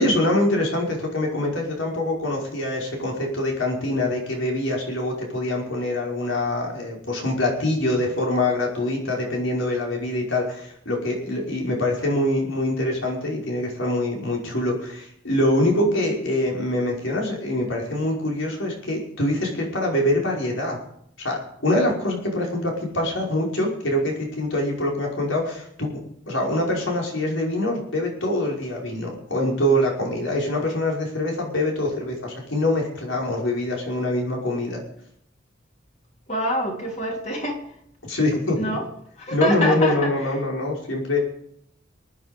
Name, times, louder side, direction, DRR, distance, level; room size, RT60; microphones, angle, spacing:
voice 1, 0.0-20.8 21.2-25.9 26.3-34.8 38.0-38.8 39.3-41.2, left 1 dB, 90° left, -1 dB, 5.3 m, -24 dB
voice 2, 36.3-37.7 38.6-38.9 39.2-40.3, equal, 35° left, 1 dB, 3.5 m, -26 dB
24.0 x 9.7 x 5.3 m, 0.70 s
head